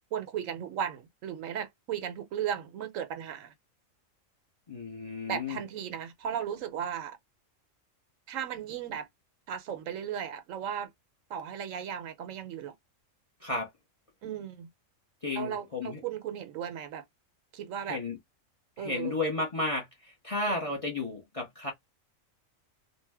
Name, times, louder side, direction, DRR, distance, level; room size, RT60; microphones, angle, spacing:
voice 1, 0.1-3.5 5.3-7.2 8.3-9.1 9.5-10.9 11.3-12.7 14.2-14.7 15.4-17.0 17.5-18.0 18.8-19.2, right 9 dB, 75° right, 1.0 m, -36 dB
voice 2, 4.7-5.6 13.4-13.7 15.2-16.0 17.9-18.2 18.8-21.7, left 2 dB, 35° left, 0.7 m, -33 dB
2.6 x 2.1 x 3.3 m
omnidirectional pair, 1.4 m